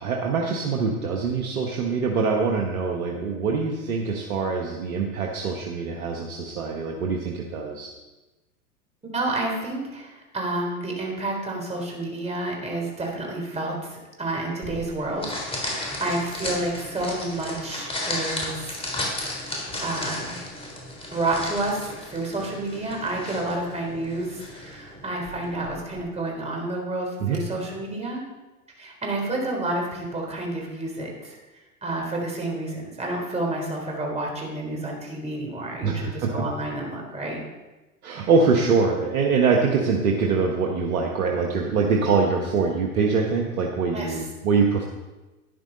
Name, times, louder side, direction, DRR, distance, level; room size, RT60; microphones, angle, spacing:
voice 1, 0.0-7.9 27.2-27.4 35.8-36.3 38.0-44.8, right 4 dB, 70° right, 1 dB, 1.6 m, -24 dB
voice 2, 9.1-19.0 19.8-20.4 21.1-28.2 28.8-31.3 31.8-37.4 38.1-38.3 43.9-44.2, right 2 dB, 15° right, 0 dB, 3.7 m, -30 dB
sound 1, 14.6-26.0, left 1 dB, 15° left, 3.6 m, -34 dB
12.0 x 10.5 x 4.1 m, 1.1 s
hypercardioid pair, 100°, 44 cm